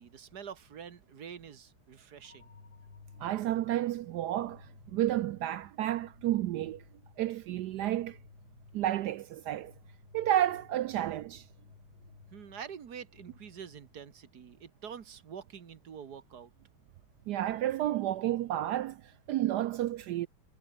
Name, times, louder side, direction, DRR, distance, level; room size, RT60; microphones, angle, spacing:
voice 1, 0.0-2.5 12.3-16.5, right 7 dB, 50° right, 1.9 m, -46 dB
sound 1, 2.2-14.2, left 5 dB, 65° left, 3.7 m, -58 dB
voice 2, 3.2-6.8 7.2-8.2 8.7-9.7 10.1-11.4 17.3-20.3, right 13 dB, 75° right, 0.9 m, -31 dB
omnidirectional pair, 2.3 m